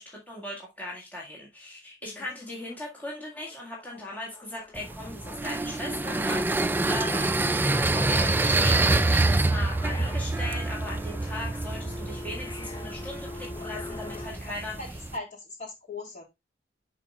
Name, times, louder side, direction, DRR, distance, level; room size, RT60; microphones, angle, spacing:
voice 1, 0.0-7.4 7.8-14.7, left 1 dB, 10° left, 1.9 m, -38 dB
sound 1, 2.4-2.5 2.8-14.3, left 2 dB, 25° left, 1.0 m, -45 dB
sound 2, 4.8-15.2, right 2 dB, 10° right, 0.3 m, -27 dB
voice 2, 14.1-14.5 14.8-16.2, left 2 dB, 45° left, 3.4 m, -40 dB
11.0 x 4.6 x 2.4 m
head